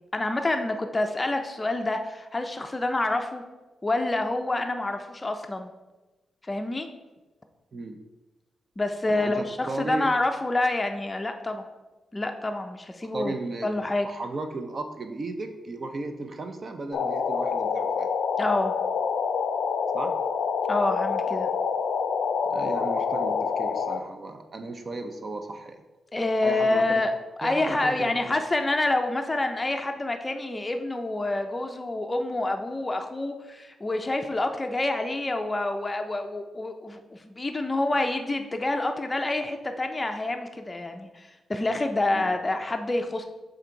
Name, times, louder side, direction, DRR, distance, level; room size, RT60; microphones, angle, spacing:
voice 1, 0.1-3.4 3.8-5.7 6.4-6.9 8.8-11.6 12.1-13.3 13.6-14.1 18.4-18.7 20.7-21.5 26.1-27.1 27.4-43.2, left 2 dB, 15° left, 5 dB, 0.5 m, -27 dB
voice 2, 9.1-10.1 13.1-13.7 14.0-18.1 19.9-20.2 22.5-25.8 26.4-27.0 27.4-28.2 42.1-42.3, right 3 dB, 35° right, 7 dB, 0.6 m, -35 dB
sound 1, 16.9-24.0, left 6 dB, 80° left, 0.4 m, -27 dB
6.4 x 3.9 x 4.5 m, 1.1 s
wide cardioid pair, 165°, 0 cm